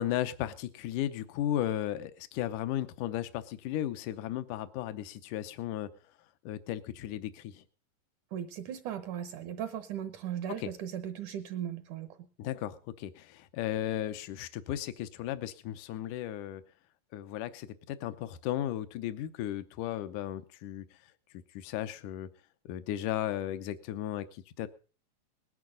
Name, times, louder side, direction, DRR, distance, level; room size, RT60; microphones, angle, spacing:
voice 1, 0.0-5.9 6.5-7.6 10.6-10.7 12.4-16.6 17.1-20.9 21.3-22.3 22.7-24.7, left 12 dB, 75° left, 12 dB, 2.3 m, -35 dB
voice 2, 8.3-12.1, right 10 dB, 70° right, 8 dB, 2.3 m, -37 dB
20.0 x 11.0 x 3.9 m, 0.37 s
omnidirectional pair, 3.8 m